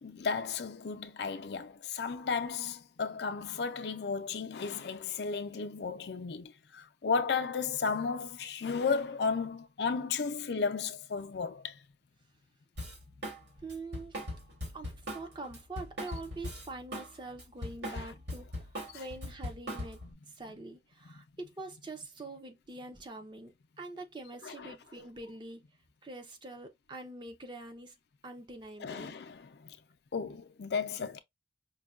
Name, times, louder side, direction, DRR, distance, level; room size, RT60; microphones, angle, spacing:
voice 1, 0.0-11.8 17.9-18.0 18.9-19.0 24.4-24.7 28.8-29.8 30.1-31.2, left 5 dB, 70° left, 0.5 m, -34 dB
Drum kit, 12.8-13.4 13.7-17.1 17.4-20.1, equal, 85° right, 2.2 m, -40 dB
voice 2, 13.6-14.2 14.7-20.0 20.3-25.6 26.0-28.0 28.2-29.2, right 2 dB, 25° right, 0.6 m, -45 dB
5.3 x 2.2 x 2.4 m
head